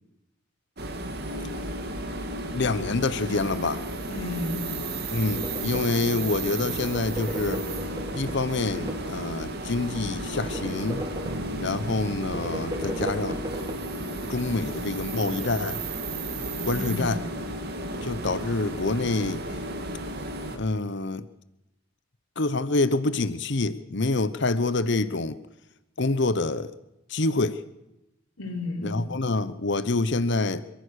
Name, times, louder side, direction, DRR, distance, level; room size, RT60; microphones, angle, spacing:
sound 1, 0.8-20.6, right 1 dB, 50° right, 2.3 m, -33 dB
voice 1, 2.5-3.8 5.1-7.6 8.1-11.0 11.6-13.4 14.3-15.8 16.6-17.2 18.0-19.4 20.5-21.3 22.4-25.4 26.0-26.7 27.1-27.6 28.8-30.6, left 3 dB, 55° left, 0.9 m, -26 dB
voice 2, 4.1-4.8 14.5-14.7 16.7-17.3 28.4-29.0, left 2 dB, 85° left, 4.4 m, -33 dB
sound 2, 5.3-6.1 6.6-9.2 9.7-11.7 12.2-13.8, right 1 dB, 20° right, 1.8 m, -36 dB
sound 3, 11.3-15.4, right 2 dB, 70° right, 0.7 m, -42 dB
27.0 x 15.0 x 6.5 m
head